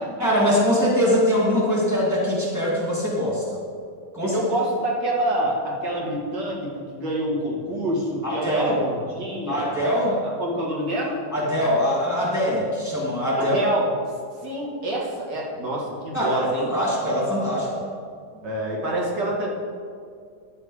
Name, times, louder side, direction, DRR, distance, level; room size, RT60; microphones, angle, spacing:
voice 1, 0.2-3.6 4.1-4.4 8.2-8.8 9.5-10.2 11.3-13.6 16.1-17.7, equal, 10° left, -6 dB, 2.0 m, -22 dB
voice 2, 4.3-9.7 10.4-11.2 13.4-13.9 14.4-16.6 18.4-19.5, right 1 dB, 80° right, -3 dB, 2.5 m, -27 dB
10.5 x 7.8 x 4.8 m, 2.2 s
omnidirectional pair, 1.9 m